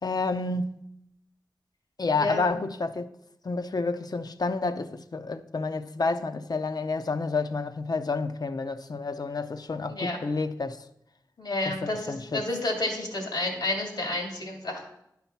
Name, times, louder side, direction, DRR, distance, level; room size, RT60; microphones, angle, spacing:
voice 1, 0.0-0.8 2.0-3.1 3.4-10.8 11.7-12.4, left 3 dB, 65° left, 0.7 m, -29 dB
voice 2, 2.1-2.5 9.9-10.2 11.4-14.8, left 2 dB, 85° left, 2.5 m, -30 dB
11.0 x 5.8 x 5.7 m
cardioid pair, 45°, 7 cm